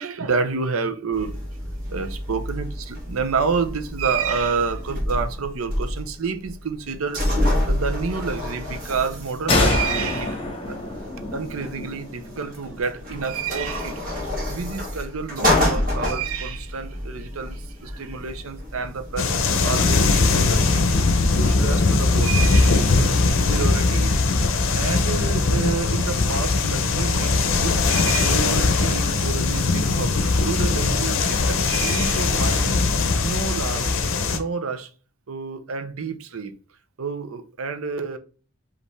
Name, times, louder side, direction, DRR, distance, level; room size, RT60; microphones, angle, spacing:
voice 1, 0.0-1.3 1.9-10.8 11.3-20.8 21.4-23.2 23.5-24.2 24.7-32.7 33.2-33.9 34.3-34.9 35.3-36.5 37.0-38.2, right 5 dB, 75° right, 0.6 m, -29 dB
sound 1, 1.1-19.9, left 1 dB, 40° right, 1.4 m, -29 dB
sound 2, 9.5-13.0, left 2 dB, 25° left, 1.0 m, -25 dB
sound 3, 19.2-34.4, left 3 dB, 60° left, 0.6 m, -20 dB
5.2 x 2.6 x 3.3 m
head